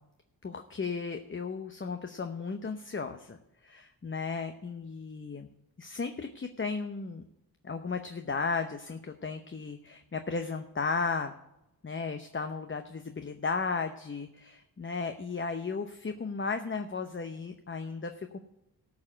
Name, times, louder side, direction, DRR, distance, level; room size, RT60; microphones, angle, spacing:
voice 1, 0.4-3.4 3.6-5.5 5.8-7.2 7.6-11.3 11.8-18.4, left 4 dB, 30° left, 7 dB, 0.8 m, -35 dB
14.0 x 4.8 x 8.7 m, 0.88 s
cardioid pair, 65°, 39 cm